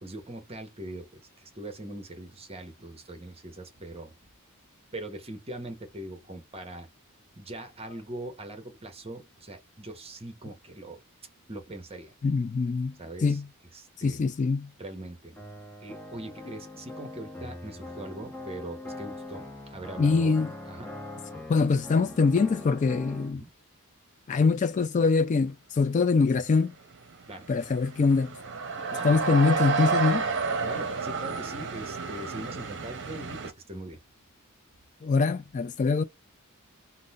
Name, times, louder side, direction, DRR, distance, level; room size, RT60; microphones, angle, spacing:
voice 1, 0.0-4.1 4.9-6.9 7.4-11.0 11.5-12.1 13.0-13.4 13.7-14.2 14.8-15.4 15.8-20.3 20.7-20.9 23.3-23.5 27.3-27.5 28.9-29.2 30.6-34.0, right 1 dB, 25° right, 1.0 m, -41 dB
voice 2, 12.2-13.0 13.2-13.5 14.0-14.7 20.0-20.5 21.5-23.4 24.3-26.7 27.5-28.4 29.0-30.3 35.0-36.0, left 4 dB, 35° left, 0.3 m, -24 dB
sound 1, 15.4-23.3, left 1 dB, 10° left, 0.9 m, -42 dB
sound 2, 26.9-27.0 27.3-33.5, right 4 dB, 55° right, 0.8 m, -30 dB
3.8 x 2.1 x 2.4 m
head